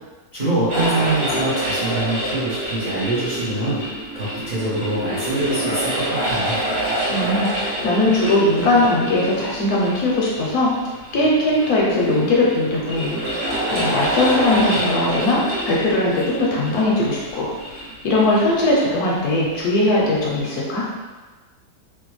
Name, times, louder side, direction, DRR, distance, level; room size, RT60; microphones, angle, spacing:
voice 1, 0.3-3.8 4.1-6.6, right 2 dB, 40° right, -11 dB, 0.7 m, -24 dB
sound 1, 0.7-19.3, right 1 dB, 75° right, 1.5 m, -27 dB
voice 2, 7.1-10.7 11.1-13.2 13.7-20.9, left 2 dB, 70° left, -4 dB, 1.0 m, -20 dB
3.3 x 2.2 x 3.0 m, 1.3 s
omnidirectional pair, 1.8 m